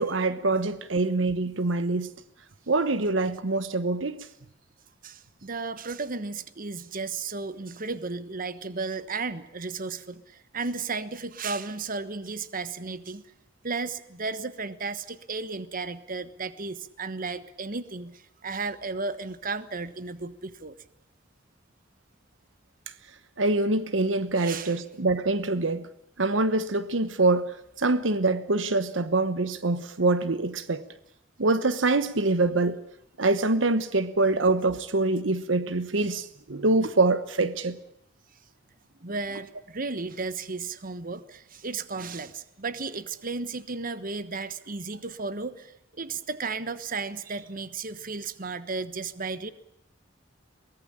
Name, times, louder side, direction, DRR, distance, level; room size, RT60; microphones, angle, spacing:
voice 1, 0.0-2.1 2.7-4.2 23.4-25.9 26.2-30.8 31.4-32.8 33.2-37.8, right 2 dB, 75° right, 1.1 m, -25 dB
voice 2, 5.0-13.3 13.6-20.7 24.4-24.7 39.0-49.5, right 4 dB, 50° right, 1.3 m, -34 dB
23.0 x 19.0 x 8.9 m
head